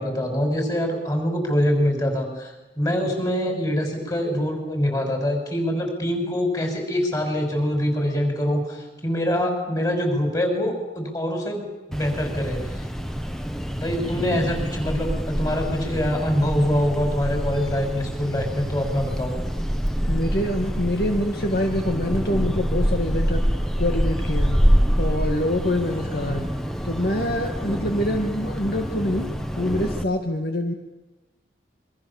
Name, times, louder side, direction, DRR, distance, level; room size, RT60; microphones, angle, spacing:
voice 1, 0.0-11.6 11.9-12.8 13.8-19.3, equal, 20° left, 3 dB, 6.3 m, -24 dB
sound 1, 11.9-30.0, equal, 5° left, 1.4 m, -26 dB
voice 2, 20.1-23.5 23.8-24.6 25.0-26.5 26.8-30.7, left 1 dB, 55° left, 3 dB, 2.1 m, -25 dB
28.0 x 24.5 x 7.3 m, 1.1 s
head